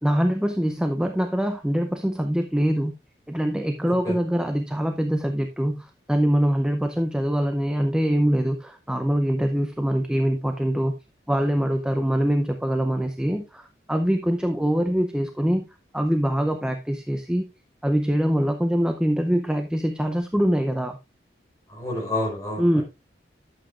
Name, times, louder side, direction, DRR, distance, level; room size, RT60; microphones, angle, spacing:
voice 1, 0.0-2.9 3.3-10.9 11.3-15.6 15.9-17.4 17.8-21.0 22.6-22.8, equal, 5° right, 0.6 m, -23 dB
voice 2, 3.8-4.1 21.7-22.8, left 1 dB, 20° left, 4.5 m, -29 dB
11.5 x 7.4 x 2.5 m
head